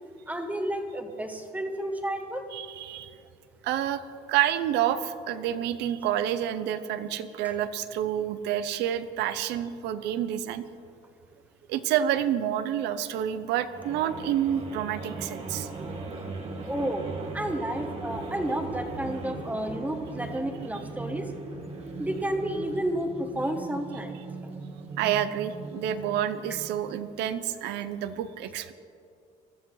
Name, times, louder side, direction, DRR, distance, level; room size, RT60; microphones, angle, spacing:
voice 1, 0.3-2.5 7.4-7.5 16.6-17.1 17.3-21.3 22.0-24.2, right 1 dB, 10° right, 5 dB, 1.5 m, -31 dB
voice 2, 2.5-3.2 3.6-4.0 4.3-10.6 11.7-15.7 25.0-28.7, right 10 dB, 85° right, 13 dB, 0.8 m, -28 dB
sound 1, 13.7-26.9, right 3 dB, 35° right, 1.9 m, -39 dB
21.0 x 13.0 x 3.9 m, 2.4 s
cardioid pair, 110°, 17 cm